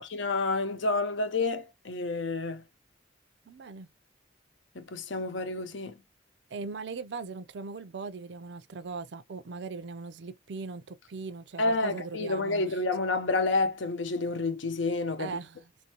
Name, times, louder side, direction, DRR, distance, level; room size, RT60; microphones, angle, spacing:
voice 1, 0.0-2.6 4.7-5.9 11.6-15.3, left 3 dB, 85° left, 0.7 m, -29 dB
voice 2, 3.5-3.9 6.5-12.8 15.2-15.7, right 4 dB, 65° right, 0.5 m, -39 dB
4.3 x 2.6 x 2.8 m
head